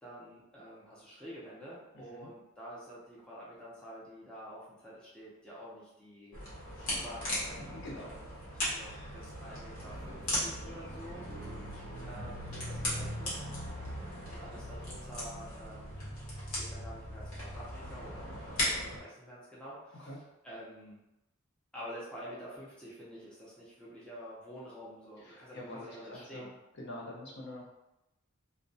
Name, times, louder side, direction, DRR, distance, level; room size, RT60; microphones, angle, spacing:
voice 1, 0.0-6.4 6.9-8.2 8.5-11.2 12.0-13.3 14.2-16.1 16.5-21.0 21.7-26.5, equal, 5° left, -8 dB, 0.5 m, -48 dB
sound 1, 6.3-19.0, left 1 dB, 90° left, 1.0 m, -38 dB
voice 2, 7.7-8.1 8.9-9.2 20.0-20.2 25.2-26.5 26.8-27.7, left 1 dB, 55° left, -4 dB, 0.6 m, -45 dB
2.2 x 2.1 x 2.6 m, 0.91 s
head